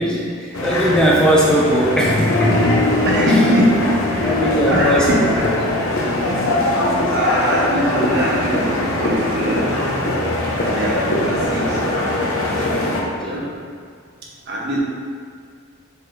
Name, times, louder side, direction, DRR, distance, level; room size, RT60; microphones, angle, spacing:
voice 1, 0.0-2.8 4.2-5.1 5.4-5.5 12.8-13.4, equal, 5° left, -4 dB, 0.6 m, -19 dB
sound 1, 0.5-13.0, left 1 dB, 70° left, 1.0 m, -21 dB
sound 2, 2.3-9.2, left 3 dB, 45° left, 0.7 m, -26 dB
voice 2, 3.0-4.4 4.7-5.7 6.2-6.5 7.1-9.8 10.5-11.8 12.6-12.7 13.2-13.5 14.5-14.8, equal, 55° right, -4 dB, 1.2 m, -22 dB
6.9 x 4.1 x 3.3 m, 2.1 s
head